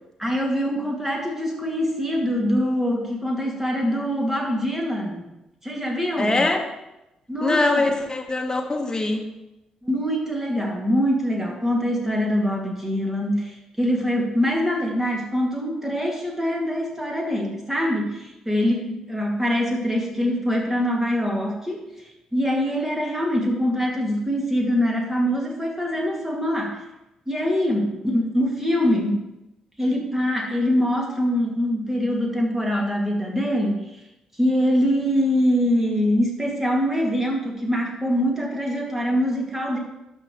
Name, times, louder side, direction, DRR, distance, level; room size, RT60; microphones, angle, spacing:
voice 1, 0.2-5.2 5.6-6.5 7.3-7.8 9.8-21.8 22.3-26.8 27.3-29.3 29.8-33.9 34.4-39.8, equal, 10° right, -1 dB, 2.4 m, -24 dB
voice 2, 6.2-6.6 7.4-9.3, left 2 dB, 20° left, 3 dB, 1.5 m, -22 dB
11.5 x 6.4 x 3.3 m, 0.95 s
figure-of-eight pair, 40°, 3 cm